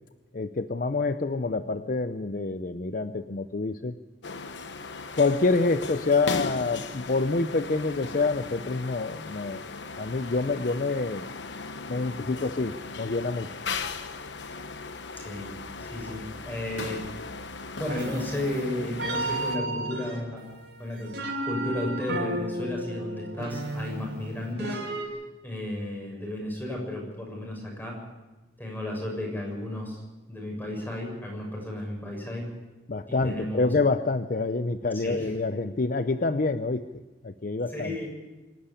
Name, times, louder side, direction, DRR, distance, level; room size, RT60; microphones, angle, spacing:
voice 1, 0.3-3.9 5.2-9.6 10.0-11.3 11.9-13.5 32.9-38.0, left 3 dB, 45° left, 10 dB, 0.6 m, -27 dB
sound 1, 4.2-19.6, left 4 dB, 70° left, 1.1 m, -37 dB
voice 2, 15.2-15.5 15.8-17.0 17.8-20.4 20.8-21.1 21.4-24.8 25.4-28.0 28.6-30.0 30.3-32.5 33.1-33.7 35.0-35.3 37.7-38.1, left 1 dB, 10° left, 0 dB, 7.0 m, -33 dB
sound 2, 17.9-25.1, right 1 dB, 65° right, 5.3 m, -33 dB
26.0 x 11.5 x 9.9 m, 1.2 s
head